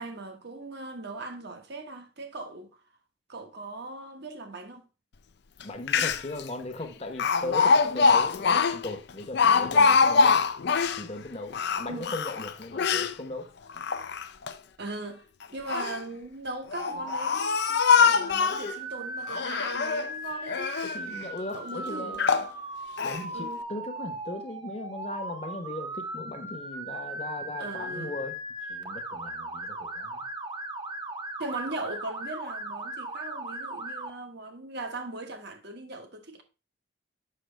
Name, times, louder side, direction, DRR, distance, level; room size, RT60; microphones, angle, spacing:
voice 1, 0.0-2.8 3.3-4.8 11.9-12.2 14.8-15.3 15.5-20.7 21.5-22.4 23.3-23.6 27.6-28.1 31.4-36.4, right 2 dB, 55° right, 1.2 m, -39 dB
Speech, 5.6-5.7 5.9-6.4 7.2-11.0 11.5-13.1 13.7-14.5 15.4-16.0 16.7-18.7 19.3-20.1 20.5-21.0 21.5-21.6 22.2-22.5 23.0-23.2, left 5 dB, 55° left, 0.5 m, -23 dB
voice 2, 5.6-10.4 11.0-13.5 20.8-22.2 23.0-28.4 28.7-30.2, left 2 dB, 30° left, 1.0 m, -38 dB
Motor vehicle (road) / Siren, 16.8-34.1, right 2 dB, 20° right, 0.8 m, -38 dB
7.7 x 6.0 x 3.3 m
head